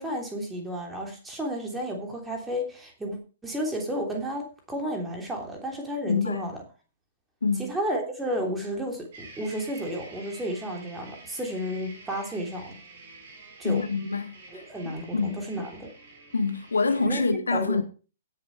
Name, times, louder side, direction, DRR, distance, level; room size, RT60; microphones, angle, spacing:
voice 1, 0.0-3.2 3.4-6.6 7.6-12.8 13.6-13.8 14.5-15.9 17.0-17.2 17.5-17.8, equal, 10° right, 3.2 m, -32 dB
voice 2, 6.1-6.4 7.4-7.7 13.6-15.5 16.3-17.8, left 4 dB, 70° left, 1.7 m, -26 dB
sound 1, 9.1-17.1, right 3 dB, 45° right, 6.4 m, -48 dB
16.5 x 7.4 x 4.7 m
figure-of-eight pair, 115°, 0 cm